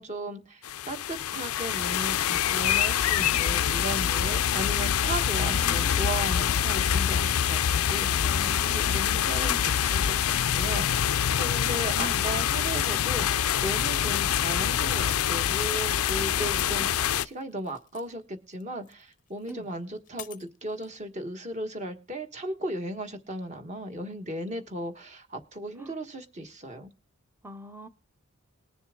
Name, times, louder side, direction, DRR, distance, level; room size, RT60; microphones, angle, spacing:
voice 1, 0.0-8.4 8.7-11.1 11.4-26.9, right 1 dB, 30° right, 6 dB, 1.4 m, -36 dB
sound 1, 0.6-17.2, left 9 dB, 80° left, 0.5 m, -25 dB
voice 2, 5.5-6.2 8.2-9.7 11.9-12.5 14.0-14.2 16.5-16.9 19.5-19.7 25.8-25.9 27.4-27.9, right 1 dB, 10° right, 10 dB, 0.7 m, -43 dB
sound 2, 17.1-18.1 18.5-21.0, left 12 dB, 35° left, 0.6 m, -47 dB
20.0 x 7.0 x 3.7 m, 0.32 s
head